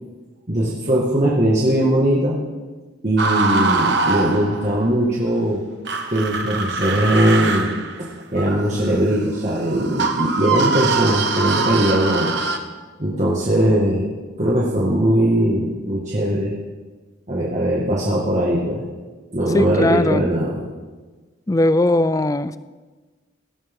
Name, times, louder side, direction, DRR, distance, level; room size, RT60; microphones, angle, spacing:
voice 1, 0.5-2.4 3.0-5.6 6.1-7.7 8.0-12.3 13.0-14.1 14.4-16.5 17.3-18.8 19.3-20.6, right 1 dB, 40° right, -5 dB, 1.9 m, -20 dB
sound 1, 3.2-4.9 5.9-12.6, right 3 dB, 60° right, 1.3 m, -23 dB
voice 2, 19.5-20.2 21.5-22.6, left 2 dB, 15° left, 14 dB, 0.4 m, -18 dB
18.0 x 15.5 x 3.8 m, 1.3 s
head